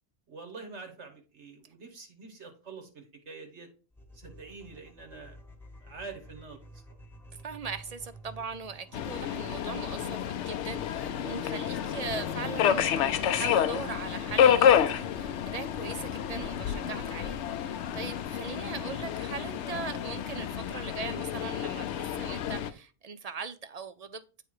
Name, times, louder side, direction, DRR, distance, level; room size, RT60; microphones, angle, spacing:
voice 1, 0.3-3.7 4.1-5.4 5.8-7.0, right 4 dB, 75° right, 1.6 m, -46 dB
sound 1, 3.9-16.8, right 1 dB, ahead, 1.0 m, -53 dB
voice 2, 7.4-24.2, right 5 dB, 55° right, 0.4 m, -40 dB
Subway metro underground, 8.9-22.7, left 9 dB, 80° left, 0.9 m, -29 dB
9.0 x 3.2 x 4.7 m
omnidirectional pair, 1.2 m